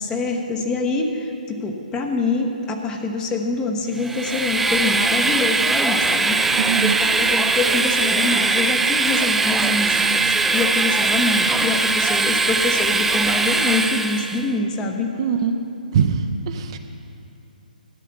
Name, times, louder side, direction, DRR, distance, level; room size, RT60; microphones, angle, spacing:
voice 1, 0.0-10.2 10.5-15.1, left 3 dB, 15° left, 3 dB, 0.9 m, -25 dB
Train, 4.0-14.5, right 3 dB, 5° right, 0.3 m, -20 dB
voice 2, 6.6-7.0 15.2-15.6 15.9-16.8, right 6 dB, 35° right, 6 dB, 0.6 m, -22 dB
13.0 x 9.2 x 5.9 m, 2.8 s
figure-of-eight pair, 135°, 5 cm